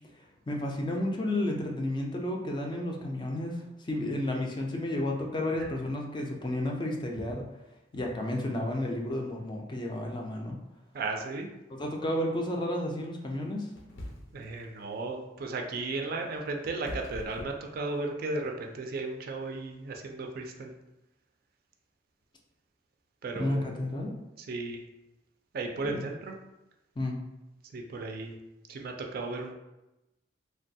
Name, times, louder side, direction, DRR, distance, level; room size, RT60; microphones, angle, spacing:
voice 1, 0.5-7.4 7.9-10.6 11.8-13.7 23.4-24.1 25.8-25.9 27.0-27.2, left 1 dB, 25° left, 1 dB, 0.4 m, -32 dB
voice 2, 10.9-11.5 14.3-20.7 23.2-23.7 24.4-24.8 25.5-26.4 27.7-28.3 28.7-29.5, right 3 dB, 55° right, 3 dB, 0.4 m, -35 dB
sound 1, 13.8-14.5 16.0-18.3, left 1 dB, 85° left, 0.5 m, -43 dB
3.1 x 2.2 x 2.6 m, 0.97 s
head